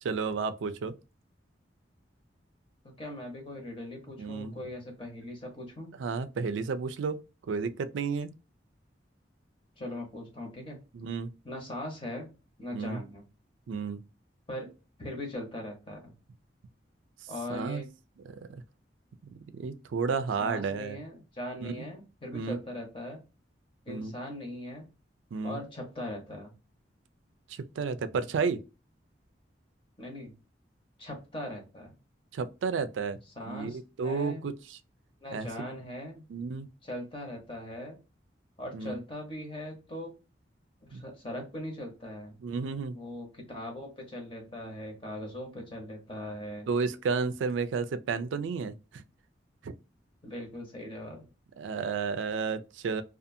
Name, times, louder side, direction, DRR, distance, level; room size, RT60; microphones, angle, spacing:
voice 1, 0.0-0.9 4.2-4.5 6.0-7.2 7.5-8.3 10.9-11.3 12.7-13.0 13.7-14.0 17.5-17.8 18.3-18.6 19.5-21.0 21.6-21.9 22.3-22.6 23.9-24.1 25.3-25.6 27.5-28.6 32.3-33.2 33.5-34.8 35.3-35.5 36.3-36.7 38.7-39.0 40.9-41.0 42.4-43.0 46.7-49.0 49.6-49.7 51.6-53.0, right 5 dB, 90° right, 0.4 m, -32 dB
voice 2, 3.0-5.9 9.8-10.8 11.4-12.3 12.6-13.2 14.5-14.7 15.0-16.1 17.3-17.9 20.4-23.2 23.8-24.8 25.4-26.5 30.0-30.4 31.0-31.9 33.4-34.4 35.2-36.2 36.8-38.0 38.6-40.1 40.8-42.4 42.9-46.7 50.2-51.3, left 1 dB, 30° left, 0.9 m, -40 dB
2.6 x 2.4 x 2.5 m
head